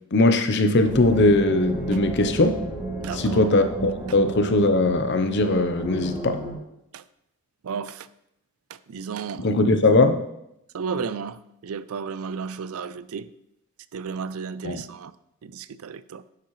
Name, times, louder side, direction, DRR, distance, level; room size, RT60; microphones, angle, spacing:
voice 1, 0.1-2.6 3.1-6.4 9.4-10.2 14.6-14.8, left 2 dB, 50° left, 0.7 m, -20 dB
sound 1, 0.8-6.5, right 2 dB, 5° right, 2.4 m, -33 dB
voice 2, 3.0-3.6 6.9-7.0 7.6-8.1 8.9-9.5 10.7-13.3 13.9-15.1 15.4-16.2, right 6 dB, 75° right, 0.4 m, -33 dB
10.0 x 7.5 x 3.2 m
head